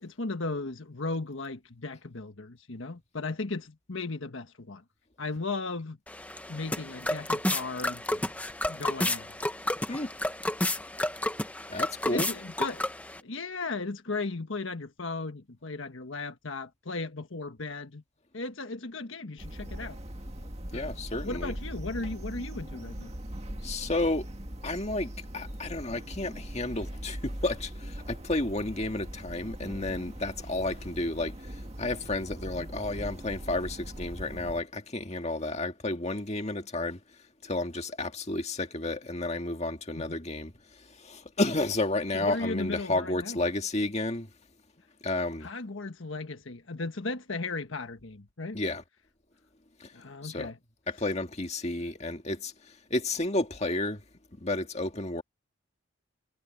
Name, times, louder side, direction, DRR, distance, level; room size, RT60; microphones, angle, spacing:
voice 1, 0.0-4.8 5.2-6.0 6.5-8.3 8.7-9.4 12.1-12.9 13.2-18.0 18.3-20.0 20.7-21.0 21.2-23.1 32.6-32.7 40.0-40.2 42.1-43.4 45.4-48.6 49.9-50.6, left 3 dB, 75° left, 1.4 m, -36 dB
sound 1, 6.1-13.2, left 1 dB, 5° left, 0.9 m, -31 dB
voice 2, 11.7-12.3 20.7-21.6 23.6-24.3 24.6-37.0 37.4-44.3 45.0-45.5 48.5-48.8 49.8-49.9 50.2-50.5 50.9-54.0 54.4-55.2, left 2 dB, 35° left, 2.0 m, -32 dB
sound 2, 19.4-34.6, equal, 30° right, 2.0 m, -40 dB
head